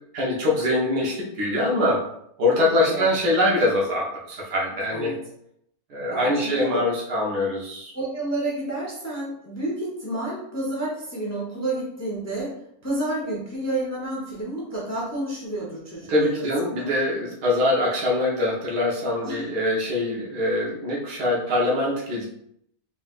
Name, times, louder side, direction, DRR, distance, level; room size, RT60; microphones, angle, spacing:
voice 1, 0.1-2.0 2.4-5.1 5.9-7.9 16.1-22.3, left 1 dB, 80° right, -3 dB, 1.7 m, -23 dB
voice 2, 6.1-6.8 7.9-12.6 12.8-16.5 16.8-16.9 19.2-19.4, right 1 dB, 15° left, -5 dB, 0.6 m, -30 dB
4.1 x 3.7 x 2.4 m, 0.73 s
omnidirectional pair, 1.7 m